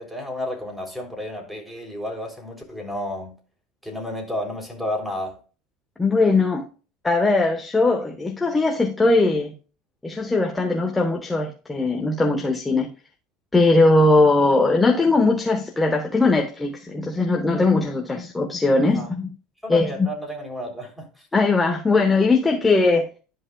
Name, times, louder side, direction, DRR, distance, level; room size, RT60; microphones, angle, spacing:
voice 1, 0.0-3.4 3.8-5.4 18.9-19.1 19.6-21.3, left 1 dB, 5° right, 3.5 m, -31 dB
voice 2, 6.0-6.7 7.0-9.5 10.0-12.9 13.5-19.3 19.7-20.1 21.3-23.1, left 3 dB, 15° left, 1.2 m, -20 dB
12.5 x 5.4 x 2.4 m
supercardioid pair, 100°, 0 cm